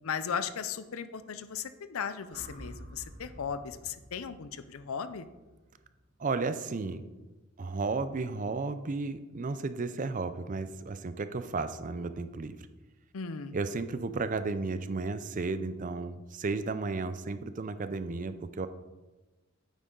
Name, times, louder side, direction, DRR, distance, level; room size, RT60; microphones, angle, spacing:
voice 1, 0.0-5.3 13.1-13.6, left 6 dB, 75° left, 12 dB, 0.6 m, -36 dB
sound 1, 2.3-6.5, equal, 50° right, 1.4 m, -50 dB
voice 2, 6.2-7.0 7.6-12.6 13.5-18.7, right 3 dB, 35° right, 12 dB, 0.5 m, -33 dB
9.3 x 8.3 x 3.8 m, 1.1 s
head